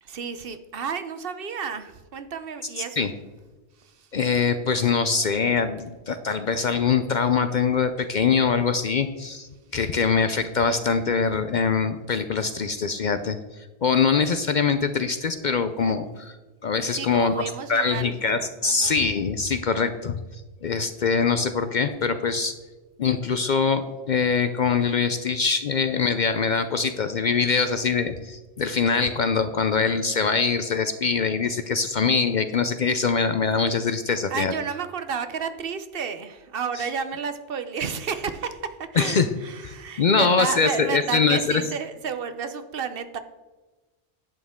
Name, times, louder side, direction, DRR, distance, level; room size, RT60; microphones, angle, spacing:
voice 1, 0.0-3.1 3.8-4.1 16.9-18.1 18.6-19.0 34.3-43.2, right 6 dB, 60° right, 10 dB, 0.9 m, -31 dB
voice 2, 4.1-16.4 16.6-22.5 23.0-34.5 36.8-36.9 38.9-39.3 39.6-41.6, left 5 dB, 55° left, 10 dB, 0.6 m, -23 dB
11.0 x 8.6 x 3.6 m, 1.2 s
omnidirectional pair, 1.1 m